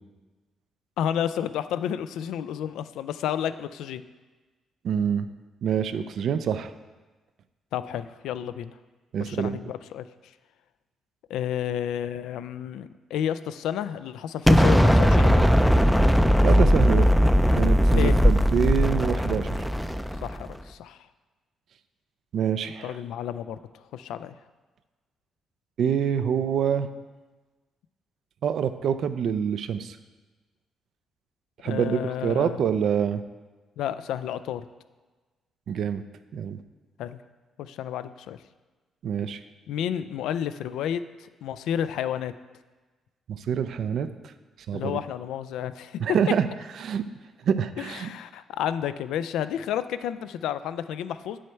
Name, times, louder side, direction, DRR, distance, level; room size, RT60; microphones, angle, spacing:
voice 1, 1.0-4.0 7.7-8.7 9.2-10.1 11.3-15.6 17.9-18.1 20.2-21.0 22.8-23.6 23.9-24.4 31.6-32.6 33.8-34.7 37.0-37.2 37.6-38.4 39.7-42.3 44.7-46.0 47.8-51.4, left 10 dB, 85° left, 13 dB, 0.3 m, -31 dB
voice 2, 4.8-5.3 5.6-6.7 9.1-9.6 16.4-17.1 17.5-19.6 22.3-23.0 25.8-26.9 28.4-30.0 31.6-33.2 35.7-36.0 36.3-36.6 39.0-39.4 43.3-44.1 44.7-45.0 46.0-46.5 46.8-47.1 47.4-48.1, right 8 dB, 65° right, 11 dB, 0.4 m, -26 dB
Explosion, 14.5-20.5, equal, ahead, 0.4 m, -19 dB
7.9 x 6.3 x 4.4 m, 1.3 s
cardioid pair, 90°, 0 cm